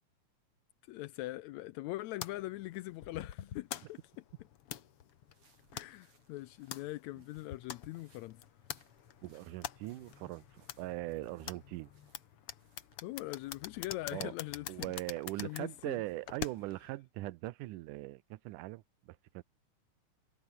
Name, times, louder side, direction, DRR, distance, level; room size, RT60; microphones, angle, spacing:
voice 1, 0.8-4.2 5.7-8.4 13.0-14.9 15.4-16.0, left 17 dB, 80° left, 1.6 m, -42 dB
sound 1, 2.2-16.9, left 10 dB, 55° left, 1.9 m, -46 dB
sound 2, 5.1-14.5, right 4 dB, 55° right, 7.0 m, -72 dB
voice 2, 9.2-11.9 14.1-14.3 14.7-19.4, right 19 dB, 80° right, 2.2 m, -41 dB
omnidirectional pair, 3.7 m